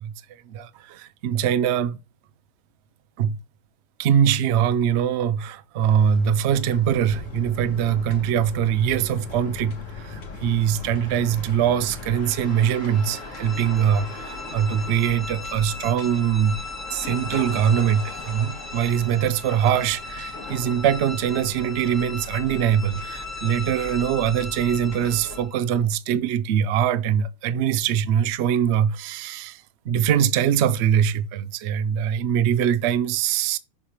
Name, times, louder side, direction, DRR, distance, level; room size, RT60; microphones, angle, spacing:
voice 1, 0.0-2.0 3.2-3.4 4.0-16.6 16.9-33.6, right 9 dB, 60° right, 0.7 m, -23 dB
sound 1, 5.8-25.4, left 3 dB, 50° left, 1.8 m, -40 dB
sound 2, 7.1-12.2, left 4 dB, 85° left, 1.9 m, -40 dB
sound 3, 12.3-25.7, left 3 dB, 15° left, 0.5 m, -38 dB
7.2 x 3.3 x 5.6 m
omnidirectional pair, 1.7 m